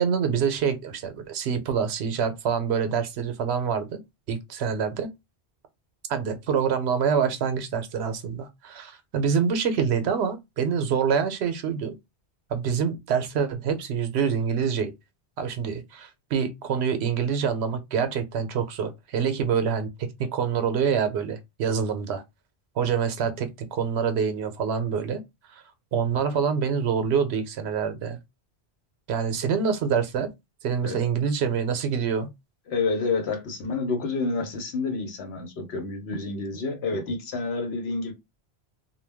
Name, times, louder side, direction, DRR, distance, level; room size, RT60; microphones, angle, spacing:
voice 1, 0.0-4.0 4.3-5.1 6.1-12.0 12.5-14.9 15.4-22.2 22.8-25.2 25.5-25.6 25.9-28.2 29.1-30.3 30.6-32.3, right 6 dB, 75° right, 0.8 m, -26 dB
voice 2, 32.7-38.1, left 3 dB, 75° left, 1.0 m, -29 dB
2.2 x 2.1 x 3.3 m
omnidirectional pair, 1.1 m